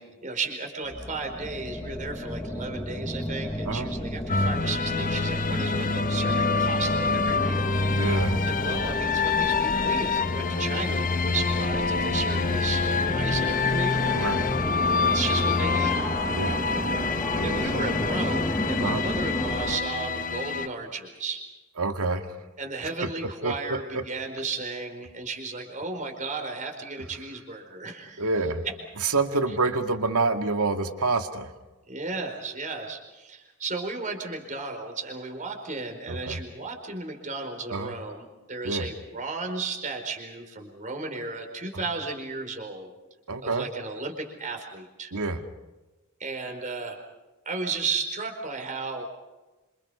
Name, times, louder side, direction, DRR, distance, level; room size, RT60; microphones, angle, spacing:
voice 1, 0.0-7.7 8.4-14.5 15.1-16.0 17.4-21.4 22.6-28.2 31.9-42.9 43.4-45.1 46.2-47.0 47.4-49.1, right 3 dB, 35° right, 3 dB, 4.6 m, -34 dB
sound 1, 0.8-19.8, equal, 15° left, 1.6 m, -33 dB
sound 2, 4.3-20.7, left 4 dB, 40° left, 1.0 m, -26 dB
voice 2, 8.0-8.4 14.1-14.5 15.2-15.5 16.3-16.7 17.4-17.7 18.8-19.0 21.8-22.4 23.4-24.0 28.2-28.6 29.0-31.5 36.1-36.4 37.7-37.9 38.6-38.9 43.3-43.7 45.1-45.4, right 3 dB, 80° right, 6 dB, 2.2 m, -27 dB
27.5 x 27.0 x 5.7 m, 1.1 s
head